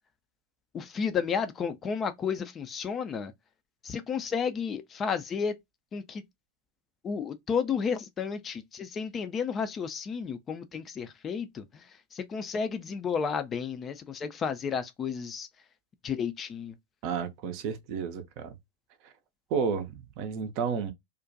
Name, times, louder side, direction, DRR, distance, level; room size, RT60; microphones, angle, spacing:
voice 1, 0.7-3.3 3.8-5.5 5.9-6.2 7.0-11.6 12.1-15.5 16.0-16.7, left 6 dB, 25° left, 0.3 m, -32 dB
voice 2, 17.0-18.5 19.5-20.9, right 6 dB, 45° right, 0.5 m, -31 dB
2.4 x 2.1 x 2.5 m
figure-of-eight pair, 90°, 0 cm